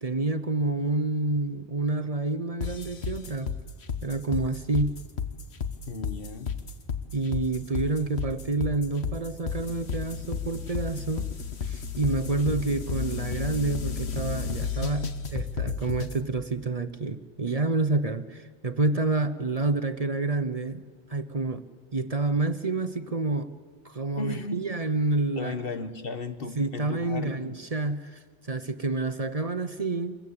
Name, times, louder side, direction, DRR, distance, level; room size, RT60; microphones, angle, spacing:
voice 1, 0.0-3.5 4.0-5.0 7.1-11.3 11.7-20.8 21.1-21.7 21.9-23.5 23.8-25.6 26.6-30.2, right 3 dB, 35° right, 10 dB, 0.9 m, -28 dB
sound 1, 2.6-16.2, left 6 dB, 75° left, 1.6 m, -32 dB
voice 2, 5.9-6.5 24.2-24.6 25.3-27.6, left 3 dB, 60° left, 9 dB, 1.6 m, -35 dB
26.0 x 21.0 x 8.7 m, 1.5 s
omnidirectional pair, 1.1 m